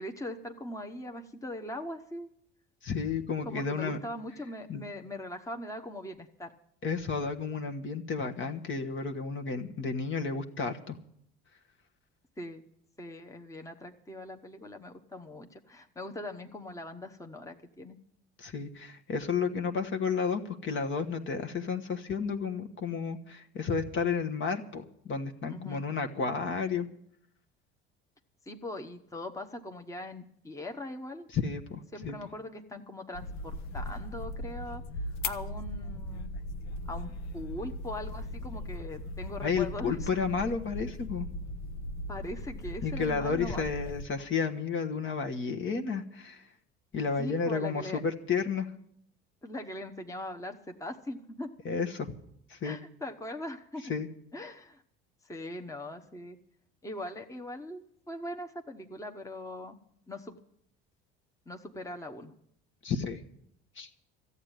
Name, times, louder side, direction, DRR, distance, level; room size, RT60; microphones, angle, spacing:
voice 1, 0.0-2.3 3.4-6.5 12.4-12.6 13.0-18.0 25.5-25.8 28.4-31.3 31.9-34.8 35.2-36.3 36.9-40.2 42.1-43.7 47.2-48.0 49.4-51.5 52.6-53.8 54.3-54.8 55.2-56.4 56.8-59.8 60.1-60.4 61.5-62.3, left 1 dB, 10° left, 5 dB, 1.1 m, -41 dB
voice 2, 2.8-4.0 4.7-4.8 6.8-11.0 18.4-26.9 31.3-32.2 39.4-41.3 42.8-46.4 46.9-48.7 51.6-52.1 52.5-52.8 53.9-54.1 62.8-63.2 63.8-63.9, left 5 dB, 40° left, 5 dB, 1.4 m, -32 dB
sound 1, 33.1-44.1, left 1 dB, 65° left, 1.0 m, -38 dB
13.5 x 8.2 x 9.0 m, 0.71 s
hypercardioid pair, 75°, 30 cm